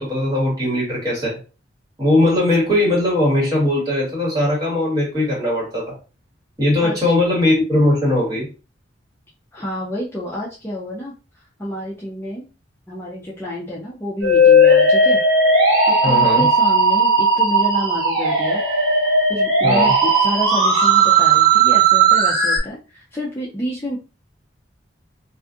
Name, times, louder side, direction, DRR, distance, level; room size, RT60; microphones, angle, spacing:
voice 1, 0.0-1.4 2.0-5.9 6.6-8.5 16.0-16.5 19.6-19.9, left 1 dB, 20° right, -6 dB, 1.5 m, -19 dB
voice 2, 6.8-7.1 9.5-11.1 11.6-12.5 12.9-15.2 15.9-18.6 19.3-24.0, equal, 15° left, -6 dB, 0.4 m, -29 dB
Musical instrument, 14.2-22.6, right 2 dB, 60° right, 1.3 m, -15 dB
2.5 x 2.4 x 2.5 m, 0.34 s
head